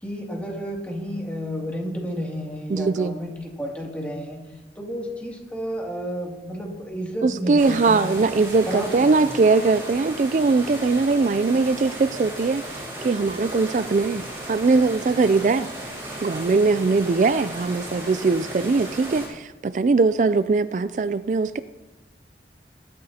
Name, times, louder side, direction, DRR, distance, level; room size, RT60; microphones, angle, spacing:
voice 1, 0.0-4.4 4.8-8.3 8.7-9.1, equal, 10° left, -2 dB, 2.4 m, -31 dB
voice 2, 2.7-3.2 7.2-15.7 16.2-21.6, right 4 dB, 45° right, 13 dB, 0.3 m, -21 dB
sound 1, 7.6-19.3, right 1 dB, 15° right, 5.8 m, -35 dB
22.0 x 13.0 x 2.8 m, 1.1 s
head